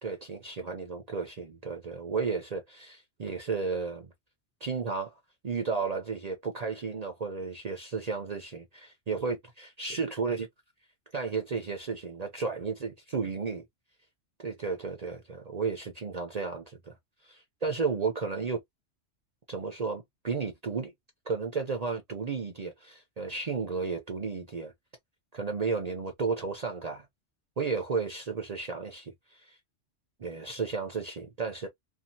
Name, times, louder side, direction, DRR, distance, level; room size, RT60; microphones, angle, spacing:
voice 1, 0.0-4.0 4.6-5.2 5.4-10.5 11.1-13.6 14.4-16.9 17.2-18.6 19.5-20.9 21.3-24.7 25.3-27.0 27.6-29.6 30.2-31.7, right 4 dB, 45° right, 0.6 m, -33 dB
2.7 x 2.5 x 2.7 m
omnidirectional pair, 1.2 m